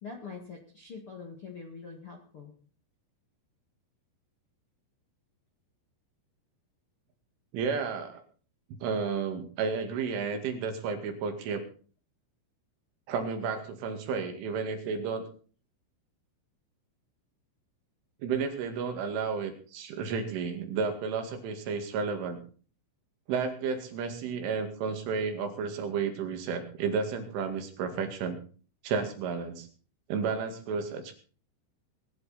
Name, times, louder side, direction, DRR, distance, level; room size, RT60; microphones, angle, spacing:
voice 1, 0.0-2.5, left 5 dB, 45° left, 1 dB, 1.8 m, -44 dB
voice 2, 7.5-8.2 8.8-11.7 13.1-15.3 18.2-22.4 23.3-28.4 28.8-29.7 30.1-31.1, right 5 dB, 75° right, 6 dB, 4.6 m, -32 dB
20.5 x 11.5 x 4.3 m, 0.41 s
omnidirectional pair, 5.7 m